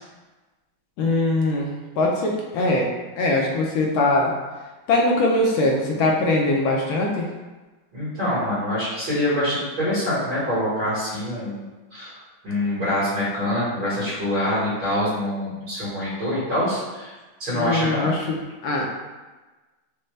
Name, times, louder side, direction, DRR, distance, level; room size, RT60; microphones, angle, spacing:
voice 1, 1.0-1.7 2.0-4.3 4.9-7.3 17.5-18.9, left 2 dB, 75° left, -1 dB, 1.4 m, -22 dB
voice 2, 7.9-11.6 11.9-12.1 12.4-17.1 17.4-18.1, left 1 dB, 75° right, -13 dB, 2.5 m, -25 dB
5.3 x 2.2 x 3.2 m, 1.2 s
omnidirectional pair, 2.3 m